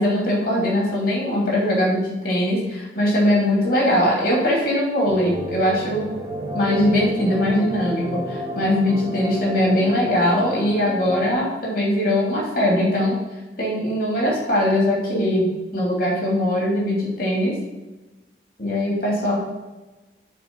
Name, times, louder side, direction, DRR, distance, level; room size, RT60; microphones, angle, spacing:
voice 1, 0.0-6.1 6.5-13.2 13.6-17.5 18.6-19.4, left 1 dB, 50° left, -4 dB, 2.8 m, -21 dB
sound 1, 5.1-11.3, equal, 35° right, 1.7 m, -31 dB
7.1 x 4.7 x 5.4 m, 1.1 s
head